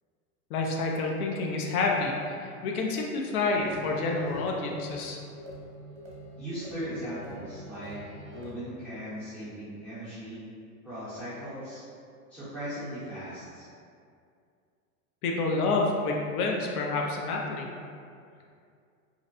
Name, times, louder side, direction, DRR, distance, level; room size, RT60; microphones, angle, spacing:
voice 1, 0.5-5.2 15.2-17.7, left 3 dB, 85° left, 0 dB, 0.5 m, -28 dB
sound 1, 3.5-8.5, right 1 dB, 40° right, 0.7 m, -45 dB
voice 2, 6.4-8.0 8.3-10.4 10.8-11.8 12.3-13.7, equal, 5° left, -14 dB, 0.6 m, -38 dB
2.6 x 2.0 x 2.6 m, 2.3 s
supercardioid pair, 145°, 44 cm